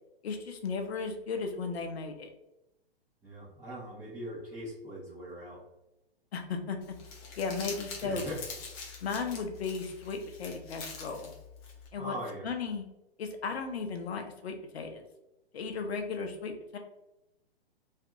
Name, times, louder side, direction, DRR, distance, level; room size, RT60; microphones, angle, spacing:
voice 1, 0.2-2.3 6.3-6.8 7.4-8.4 9.0-11.3 11.9-12.2 12.4-12.8 13.2-15.0 15.5-16.8, left 5 dB, 80° left, 4 dB, 0.5 m, -35 dB
voice 2, 3.2-5.6 8.0-8.4 11.9-12.5, right 1 dB, 10° right, -11 dB, 0.8 m, -41 dB
Crumpling crinkling, 6.8-11.9, left 4 dB, 25° left, 0.5 m, -44 dB
2.6 x 2.4 x 2.4 m, 0.90 s
hypercardioid pair, 125°, 31 cm